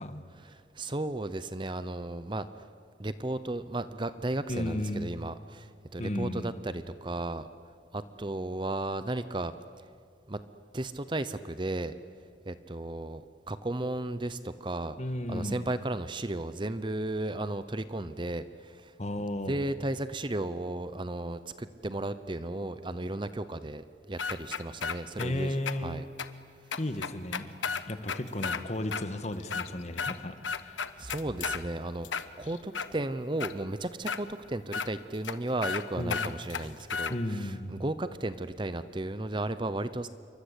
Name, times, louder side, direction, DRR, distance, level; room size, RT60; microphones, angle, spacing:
voice 1, 0.4-2.5 3.0-7.5 7.9-9.5 10.3-10.4 10.7-11.9 12.4-15.0 15.3-18.9 19.4-26.1 31.0-40.1, right 2 dB, 25° right, 12 dB, 0.7 m, -34 dB
voice 2, 4.5-5.1 6.0-6.5 15.0-15.6 19.0-19.6 25.2-26.0 26.8-27.5 27.8-30.8 36.0-36.3 37.1-37.8, left 1 dB, 35° left, 9 dB, 1.6 m, -34 dB
sound 1, 24.2-25.3 25.7-25.8 26.2-26.3 26.7-28.6 28.9-29.0 29.4-30.2 30.4-31.6 32.0-32.9 33.4-33.5 34.1-34.2 34.7-34.9 35.2-35.3 35.6-35.8 36.1-37.1, left 6 dB, 85° left, 1.2 m, -33 dB
28.5 x 24.0 x 8.3 m, 2.2 s
head